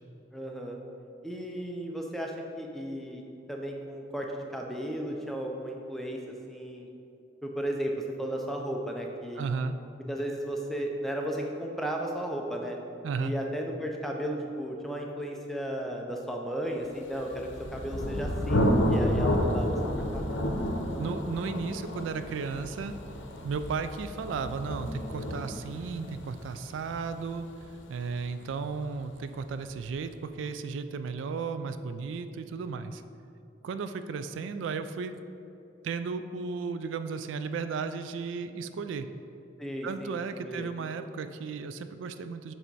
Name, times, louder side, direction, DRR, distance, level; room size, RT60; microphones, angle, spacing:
voice 1, 0.3-0.8 1.2-3.2 3.5-6.2 6.5-6.9 7.4-7.9 8.2-9.4 10.1-12.8 13.2-20.2 39.6-40.7, right 1 dB, ahead, 0 dB, 0.4 m, -34 dB
voice 2, 9.4-9.8 13.0-13.3 21.0-22.9 23.4-27.5 27.9-33.0 33.6-35.2 35.8-39.1 39.8-42.5, right 5 dB, 85° right, 10 dB, 0.3 m, -34 dB
Thunder, 17.2-28.7, equal, 85° left, 0.7 m, -31 dB
7.3 x 3.4 x 4.0 m, 2.7 s
head